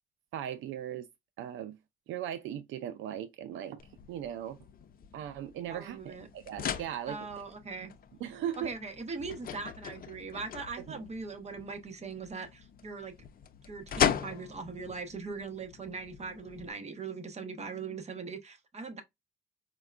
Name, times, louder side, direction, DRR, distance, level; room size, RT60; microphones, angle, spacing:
voice 1, 0.3-1.1 1.4-1.8 2.1-3.8 4.1-4.6 5.1-7.2 7.8-7.9 8.2-8.7 10.9-11.0, right 10 dB, 80° right, 0.4 m, -38 dB
sound 1, 3.8-16.7, left 8 dB, 45° left, 0.5 m, -38 dB
voice 2, 5.7-6.3 7.1-7.9 8.6-13.1 13.7-19.0, right 4 dB, 35° right, 0.9 m, -40 dB
4.4 x 2.2 x 2.4 m
cardioid pair, 90°, 20 cm